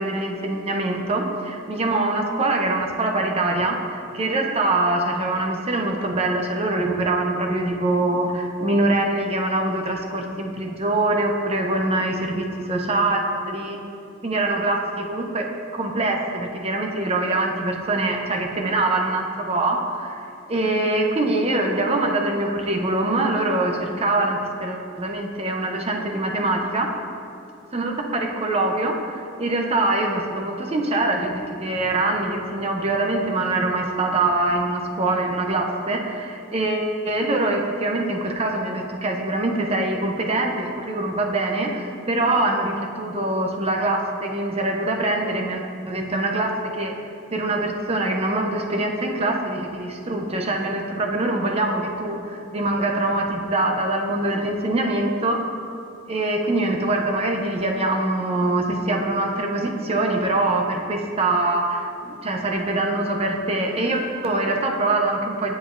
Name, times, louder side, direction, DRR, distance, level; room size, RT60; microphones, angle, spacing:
voice 1, 0.0-13.8 14.2-15.5 15.7-20.2 20.5-26.9 27.7-46.9 47.3-55.4 56.1-65.5, right 2 dB, 30° right, 2 dB, 0.6 m, -24 dB
8.0 x 7.2 x 2.5 m, 2.5 s
head